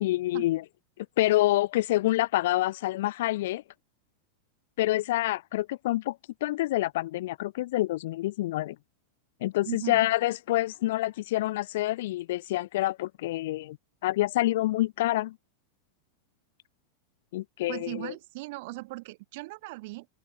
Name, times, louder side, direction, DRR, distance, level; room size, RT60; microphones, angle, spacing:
voice 1, 0.0-0.6 1.0-3.6 4.8-8.8 9.4-13.8 14.0-15.4 17.3-18.1, left 16 dB, 55° left, 0.6 m, -27 dB
voice 2, 9.6-10.0 17.7-20.1, right 23 dB, 50° right, 0.6 m, -38 dB
open air
figure-of-eight pair, 90°, 0 cm